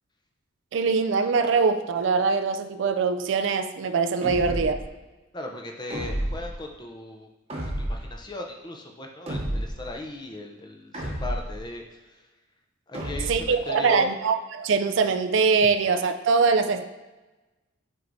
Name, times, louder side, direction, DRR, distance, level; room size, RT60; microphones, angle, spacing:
voice 1, 0.7-4.8 13.3-16.9, right 5 dB, 60° right, 7 dB, 0.4 m, -23 dB
sound 1, 4.2-4.9 5.9-6.5 7.5-8.2 9.3-9.9 10.9-11.6 12.9-13.6, right 1 dB, 30° right, 0.9 m, -31 dB
voice 2, 5.3-7.3 7.8-12.2 12.9-14.1, left 2 dB, 20° left, 2 dB, 0.5 m, -38 dB
7.6 x 4.7 x 2.6 m, 1.1 s
head